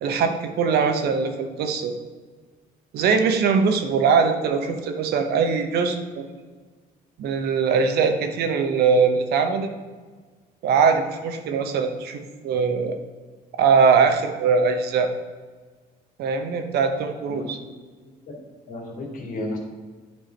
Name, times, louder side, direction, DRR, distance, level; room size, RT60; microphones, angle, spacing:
voice 1, 0.0-1.9 2.9-6.3 7.2-9.7 10.6-13.0 13.5-15.1 16.2-17.6, right 5 dB, 70° right, 6 dB, 1.0 m, -21 dB
voice 2, 17.3-17.7 18.3-18.4 18.7-19.6, left 1 dB, 55° left, 0 dB, 2.3 m, -33 dB
9.6 x 4.7 x 4.5 m, 1.4 s
cardioid pair, 110°, 17 cm